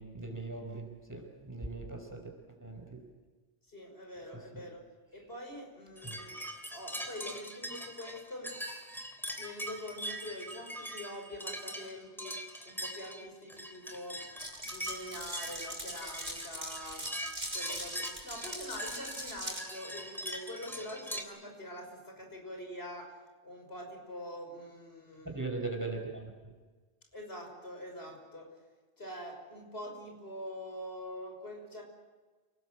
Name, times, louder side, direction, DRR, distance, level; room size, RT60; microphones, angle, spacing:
voice 1, 0.0-2.3 2.6-3.0 4.3-4.4 6.0-6.2 25.3-26.3, right 3 dB, 15° right, 3 dB, 5.2 m, -39 dB
voice 2, 3.7-4.8 5.1-6.4 6.7-8.5 9.4-12.4 12.7-14.2 14.6-17.1 17.5-23.1 23.4-25.4 27.1-28.5 29.0-31.8, left 1 dB, 65° left, 2 dB, 6.0 m, -44 dB
sound 1, 6.0-21.2, equal, ahead, 3.2 m, -42 dB
Glass, 14.4-19.6, equal, 65° right, 5.7 m, -41 dB
29.5 x 20.0 x 7.8 m, 1.3 s
omnidirectional pair, 1.1 m